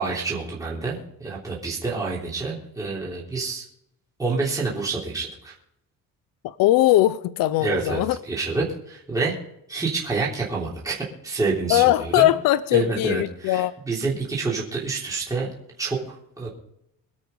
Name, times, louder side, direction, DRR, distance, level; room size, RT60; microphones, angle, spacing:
voice 1, 0.0-3.6 4.2-5.5 7.6-9.3 9.7-12.3 12.7-15.5 15.8-16.5, right 4 dB, 10° right, -5 dB, 3.2 m, -28 dB
voice 2, 6.4-8.2 11.7-13.7, left 14 dB, 80° left, 16 dB, 0.7 m, -20 dB
24.5 x 8.3 x 3.9 m, 0.78 s
cardioid pair, 180°, 33 cm